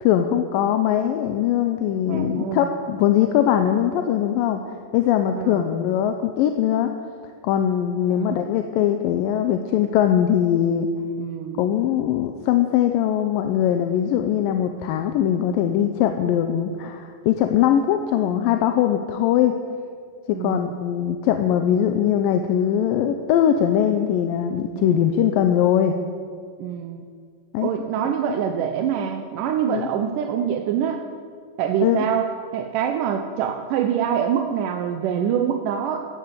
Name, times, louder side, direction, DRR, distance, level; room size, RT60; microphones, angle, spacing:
voice 1, 0.0-6.9 7.4-10.9 11.6-19.5 20.3-25.9 27.5-27.7 28.3-28.4 29.7-29.9 31.8-32.0, left 10 dB, 80° left, 6 dB, 2.3 m, -21 dB
voice 2, 2.1-2.7 5.4-5.7 8.1-8.4 11.2-11.6 20.3-20.8 24.7-25.1 26.6-27.1 27.6-31.0 31.6-36.1, right 8 dB, 75° right, 4 dB, 2.1 m, -25 dB
14.5 x 9.9 x 8.2 m, 2.1 s
omnidirectional pair, 4.2 m